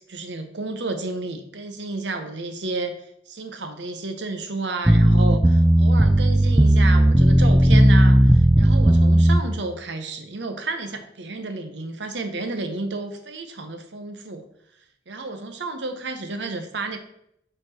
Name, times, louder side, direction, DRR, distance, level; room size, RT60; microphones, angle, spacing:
voice 1, 0.0-3.0 3.3-14.4 15.1-17.0, right 3 dB, 85° right, 7 dB, 1.0 m, -31 dB
Bass Sound, 4.9-9.4, right 1 dB, 10° right, 0.3 m, -15 dB
7.8 x 4.4 x 4.3 m, 0.74 s
head